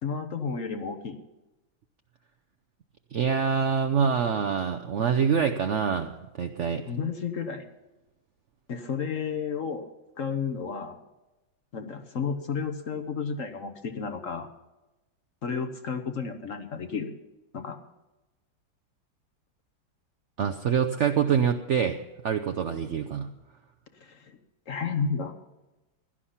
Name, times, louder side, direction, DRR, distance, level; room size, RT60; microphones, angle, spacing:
voice 1, 0.0-1.2 6.9-7.7 8.7-9.9 10.2-11.0 11.7-14.5 15.4-17.1 17.5-17.8 24.0-24.4 24.7-25.3, left 5 dB, 50° left, 8 dB, 1.2 m, -32 dB
voice 2, 3.1-6.8 20.4-22.0 22.2-23.3, right 7 dB, 70° right, 7 dB, 0.6 m, -25 dB
16.5 x 11.5 x 5.7 m, 1.0 s
omnidirectional pair, 2.1 m